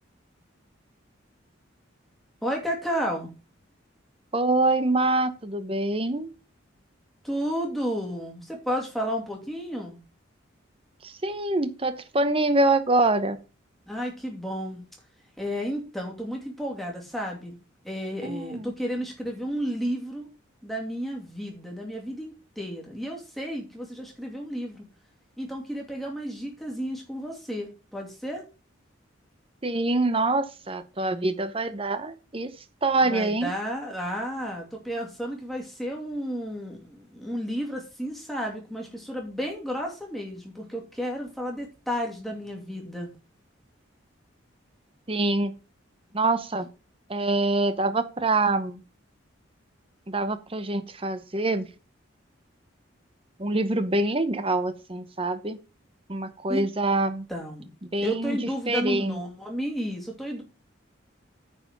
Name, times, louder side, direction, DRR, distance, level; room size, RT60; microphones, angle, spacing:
voice 1, 2.4-3.3 7.2-10.0 13.9-14.8 15.4-17.6 17.8-20.3 20.6-24.8 25.4-28.4 33.0-43.1 56.5-56.6 57.3-57.7 58.0-60.4, equal, ahead, -1 dB, 2.6 m, -32 dB
voice 2, 4.3-6.3 11.0-13.4 18.2-18.7 29.6-32.5 32.8-33.5 45.1-45.5 46.1-46.7 47.1-48.8 50.1-51.7 53.4-55.6 56.1-57.3 57.9-58.4 58.7-59.2, right 2 dB, 30° right, 11 dB, 0.9 m, -25 dB
9.6 x 4.9 x 6.0 m, 0.32 s
head